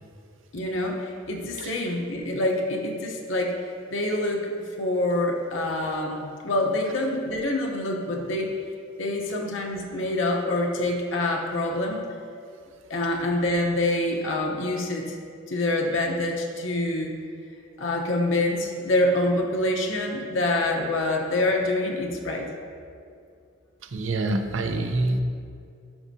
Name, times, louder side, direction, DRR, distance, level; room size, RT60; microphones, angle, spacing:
voice 1, 0.5-4.5 4.8-8.5 9.0-12.0 12.9-15.2 15.5-17.1 17.8-22.5, left 1 dB, 80° left, 0 dB, 0.9 m, -26 dB
voice 2, 23.8-25.2, right 2 dB, 80° right, 6 dB, 0.6 m, -26 dB
12.0 x 6.1 x 2.8 m, 2.4 s
head